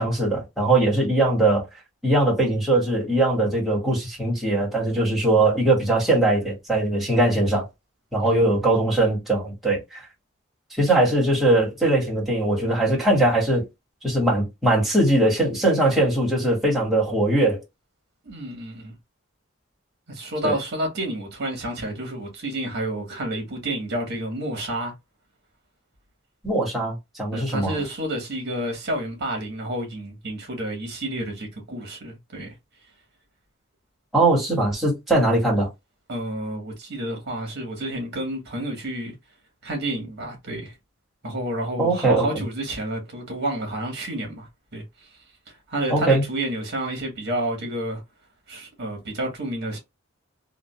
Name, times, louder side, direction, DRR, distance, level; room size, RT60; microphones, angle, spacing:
voice 1, 0.0-1.6 2.0-7.7 8.1-10.0 10.8-13.6 14.0-17.6 20.4-20.5 26.4-27.8 34.1-35.7 41.8-42.4 45.9-46.2, right 2 dB, ahead, 1.9 m, -21 dB
voice 2, 18.2-18.9 20.1-24.9 27.3-32.5 36.1-39.1 39.6-40.7 41.2-44.5 44.7-44.8 45.7-48.0 48.5-49.8, right 1 dB, 55° right, 1.6 m, -30 dB
3.8 x 2.5 x 2.4 m
head